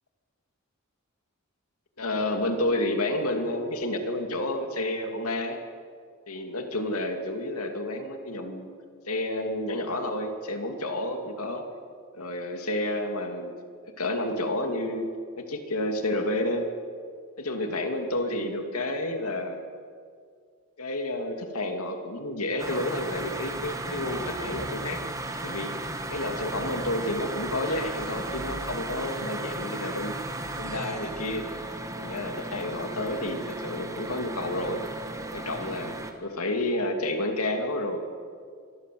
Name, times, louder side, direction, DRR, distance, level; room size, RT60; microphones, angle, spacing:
voice 1, 2.0-5.6 6.3-8.7 9.1-11.6 12.2-13.5 14.0-16.7 17.4-19.6 20.8-25.0 25.4-25.8 26.1-30.2 30.6-31.5 32.0-34.8 35.3-38.0, left 1 dB, 80° left, 4 dB, 2.8 m, -30 dB
sound 1, 22.6-36.1, right 2 dB, 15° right, 1.9 m, -35 dB
26.0 x 22.0 x 7.9 m, 2.1 s
head